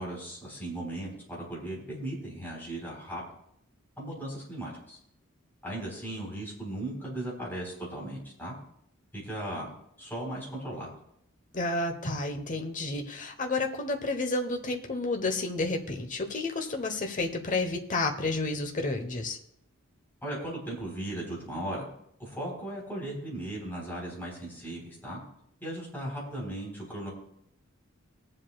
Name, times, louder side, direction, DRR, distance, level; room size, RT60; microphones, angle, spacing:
voice 1, 0.0-3.2 4.0-5.0 5.6-8.5 9.1-9.7 10.0-10.9 20.2-21.9 22.2-25.2 25.6-27.1, right 1 dB, 10° left, -4 dB, 3.9 m, -37 dB
voice 2, 11.5-19.4, left 2 dB, 40° left, 4 dB, 1.0 m, -31 dB
23.0 x 7.7 x 2.4 m, 0.75 s
head